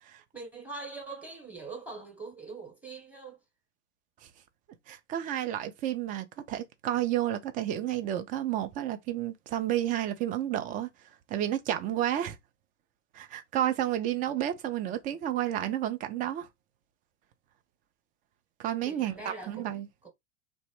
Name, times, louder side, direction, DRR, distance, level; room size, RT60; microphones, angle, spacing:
voice 1, 0.3-3.4 18.8-20.1, right 3 dB, 5° right, 1.0 m, -43 dB
voice 2, 4.9-10.9 11.3-12.4 13.1-16.5 18.6-19.9, right 12 dB, 25° right, 0.4 m, -31 dB
3.0 x 2.0 x 3.0 m
figure-of-eight pair, 90°, 38 cm